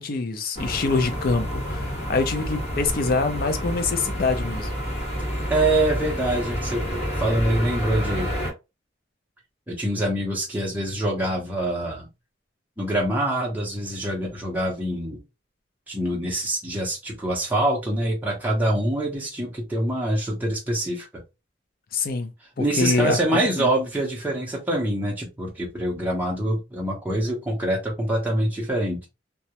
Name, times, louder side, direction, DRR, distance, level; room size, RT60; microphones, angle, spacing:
voice 1, 0.0-4.7 21.9-22.3 22.6-23.7, left 4 dB, 50° left, 0.5 m, -25 dB
sound 1, 0.5-8.5, equal, 35° left, 1.2 m, -29 dB
voice 2, 5.5-8.3 9.7-12.1 12.8-15.2 15.9-21.2 22.6-29.0, right 1 dB, 10° right, 0.6 m, -25 dB
2.3 x 2.0 x 2.8 m
head